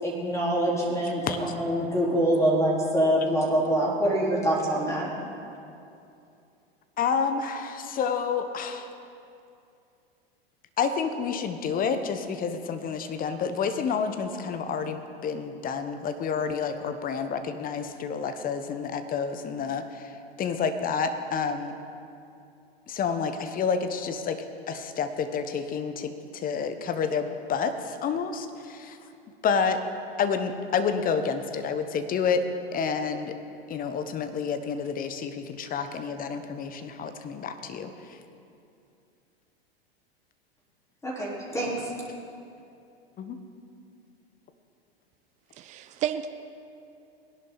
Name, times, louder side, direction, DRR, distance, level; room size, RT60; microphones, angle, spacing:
voice 1, 0.0-5.1 41.0-41.9, right 1 dB, 10° left, -4 dB, 4.1 m, -25 dB
voice 2, 7.0-8.9 10.8-21.8 22.9-29.0 29.4-29.8 30.2-32.5 32.7-33.3 33.7-38.2 43.2-43.4, left 6 dB, 30° left, 9 dB, 1.1 m, -29 dB
voice 3, 45.6-46.3, right 10 dB, 25° right, 9 dB, 0.5 m, -31 dB
20.0 x 11.0 x 4.0 m, 2.6 s
figure-of-eight pair, 90°, 31 cm